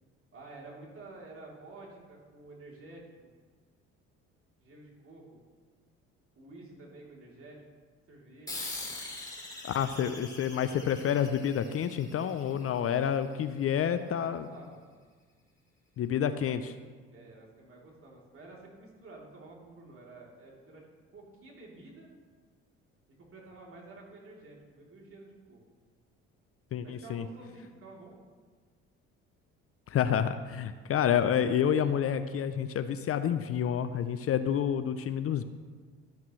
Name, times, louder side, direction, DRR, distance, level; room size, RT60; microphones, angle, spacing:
voice 1, 0.3-3.3 4.6-5.4 6.3-7.6 8.1-8.6 13.8-14.8 17.1-20.9 21.1-22.1 23.1-25.6 26.8-28.2, right 2 dB, 45° right, -3 dB, 3.3 m, -50 dB
sound 1, 8.5-13.4, left 2 dB, 10° left, 3.2 m, -43 dB
voice 2, 9.6-14.5 16.0-16.7 26.7-27.3 29.9-35.4, left 8 dB, 45° left, 11 dB, 0.6 m, -29 dB
13.0 x 10.5 x 3.2 m, 1.5 s
hypercardioid pair, 65°, 31 cm